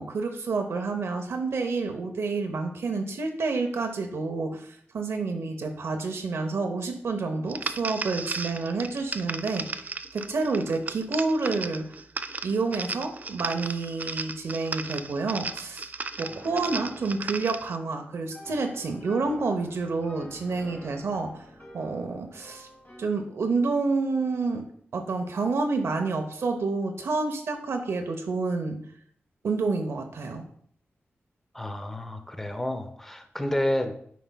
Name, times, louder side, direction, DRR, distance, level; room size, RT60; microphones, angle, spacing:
voice 1, 0.0-11.9 12.4-15.8 16.2-21.4 21.7-22.7 23.0-24.6 24.9-28.8 29.4-30.5, right 3 dB, 80° right, 4 dB, 0.7 m, -29 dB
sound 1, 7.5-17.8, right 3 dB, 40° right, 0.3 m, -35 dB
Piano, 16.2-23.2, left 1 dB, 50° left, 1.9 m, -48 dB
voice 2, 31.5-34.0, left 1 dB, 10° left, 7 dB, 0.7 m, -30 dB
9.2 x 4.6 x 2.2 m, 0.63 s
wide cardioid pair, 85°, 4 cm